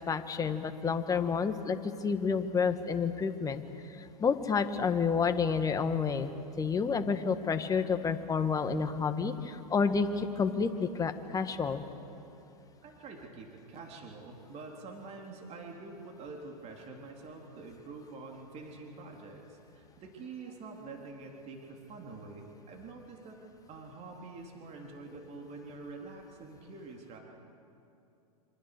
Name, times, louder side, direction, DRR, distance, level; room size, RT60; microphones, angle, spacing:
voice 1, 0.1-11.8, left 5 dB, 15° left, 8 dB, 1.6 m, -30 dB
voice 2, 12.8-23.4 23.7-27.2, right 3 dB, 30° right, 1 dB, 3.5 m, -46 dB
27.0 x 25.5 x 6.7 m, 2.8 s
hypercardioid pair, 105°, 20 cm